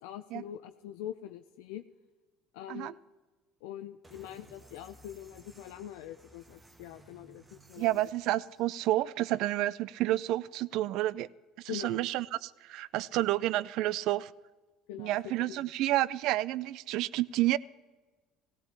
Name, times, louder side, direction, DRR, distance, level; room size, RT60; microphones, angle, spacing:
voice 1, 0.0-1.8 2.5-3.0 3.6-8.1 11.7-12.0 14.9-15.7, left 11 dB, 75° left, 7 dB, 0.4 m, -43 dB
sound 1, 4.0-8.8, right 2 dB, 20° right, 1.2 m, -58 dB
voice 2, 7.8-11.3 11.6-14.3 15.0-17.6, right 15 dB, 65° right, 20 dB, 0.3 m, -30 dB
17.0 x 16.0 x 2.9 m, 1.3 s
hypercardioid pair, 70°, 0 cm